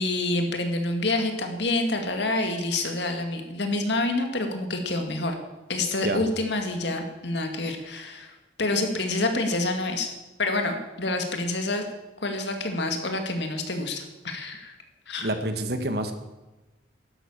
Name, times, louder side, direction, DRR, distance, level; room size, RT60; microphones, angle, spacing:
voice 1, 0.0-5.4 5.7-10.1 10.4-11.9 12.2-14.7 15.1-15.3, left 2 dB, 70° left, 5 dB, 2.2 m, -27 dB
voice 2, 15.2-16.1, right 1 dB, 55° right, 8 dB, 1.6 m, -27 dB
12.0 x 11.5 x 7.4 m, 1.1 s
head